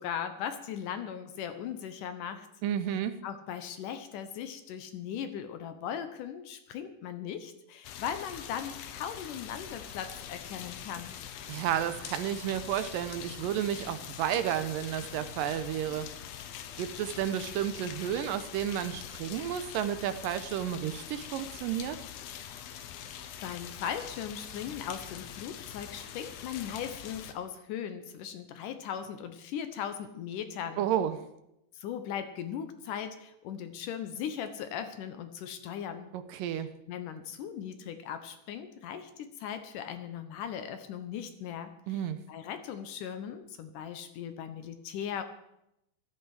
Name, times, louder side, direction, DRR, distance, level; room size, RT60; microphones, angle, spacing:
voice 1, 0.0-2.5 3.2-11.2 23.0-30.9 31.7-36.1 36.9-45.2, left 8 dB, 70° left, 9 dB, 2.2 m, -38 dB
voice 2, 2.6-3.2 11.5-16.1 16.8-22.0 30.8-31.2 36.1-36.7 41.9-42.2, right 10 dB, 80° right, 11 dB, 2.2 m, -32 dB
sound 1, 7.8-27.3, left 9 dB, 85° left, 2.8 m, -44 dB
14.5 x 13.0 x 4.8 m, 0.84 s
omnidirectional pair, 4.2 m